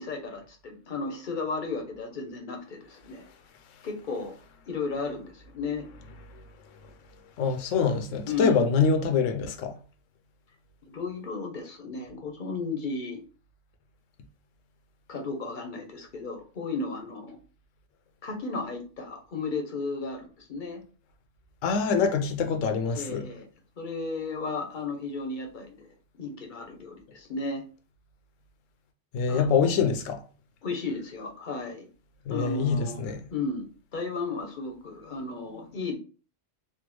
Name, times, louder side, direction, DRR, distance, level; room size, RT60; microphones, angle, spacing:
voice 1, 0.0-3.2 3.8-4.4 4.7-5.9 8.3-8.7 10.8-13.2 15.1-17.4 18.2-20.8 22.9-23.5 23.8-25.9 26.2-27.6 29.3-29.7 30.6-31.9 32.3-33.0 33.3-35.9, left 3 dB, 50° left, 0.6 m, -34 dB
voice 2, 7.4-9.8 21.6-23.3 29.1-30.2 32.3-33.2, left 5 dB, 90° left, 1.0 m, -25 dB
3.3 x 2.1 x 3.0 m
omnidirectional pair, 1.3 m